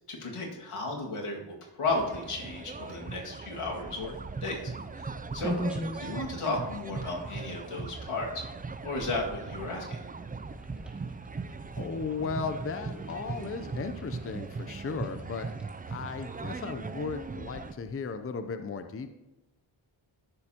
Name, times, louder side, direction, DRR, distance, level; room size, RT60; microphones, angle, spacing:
voice 1, 0.1-4.2 4.4-5.6 6.0-8.4 8.8-10.0, left 2 dB, 80° left, -2 dB, 2.2 m, -34 dB
sound 1, 1.9-17.7, right 4 dB, 20° right, 0.4 m, -39 dB
sound 2, 3.6-18.2, equal, ahead, 1.7 m, -44 dB
voice 2, 5.4-6.1 11.8-15.5 15.9-19.1, left 5 dB, 25° left, 9 dB, 0.6 m, -36 dB
14.0 x 6.7 x 2.9 m, 1.0 s
cardioid pair, 60°, 50 cm